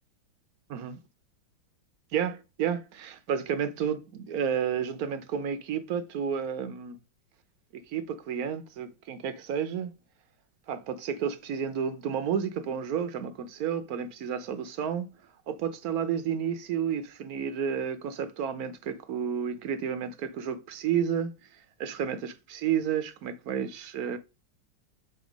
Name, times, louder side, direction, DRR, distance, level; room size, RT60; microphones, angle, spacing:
voice 1, 2.1-7.0 7.7-9.9 10.7-15.1 15.5-24.2, right 8 dB, 60° right, 1.1 m, -31 dB
7.9 x 2.8 x 5.1 m
omnidirectional pair, 2.2 m